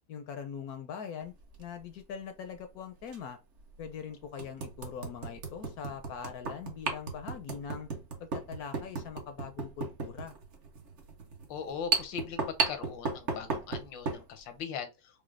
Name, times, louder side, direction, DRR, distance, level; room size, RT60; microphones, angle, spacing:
voice 1, 0.1-3.4 3.8-7.9 8.2-10.3, left 7 dB, 70° left, 1.0 m, -42 dB
sound 1, 1.4-1.6 3.1-3.2 3.8-3.9 4.4-14.3, right 4 dB, 50° right, 1.0 m, -35 dB
voice 2, 11.5-15.2, left 7 dB, 85° left, 1.5 m, -40 dB
4.8 x 2.0 x 3.1 m
omnidirectional pair, 2.0 m